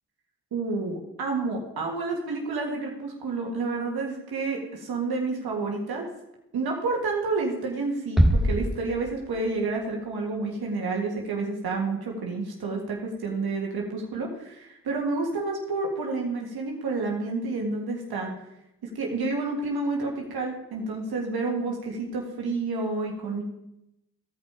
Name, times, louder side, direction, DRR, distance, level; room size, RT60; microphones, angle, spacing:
voice 1, 0.5-6.1 6.5-18.3 18.8-23.4, right 3 dB, 85° right, 0 dB, 1.7 m, -29 dB
sound 1, 8.2-9.8, equal, ahead, 1.1 m, -24 dB
15.0 x 5.4 x 4.9 m, 0.86 s
cardioid pair, 45°, 36 cm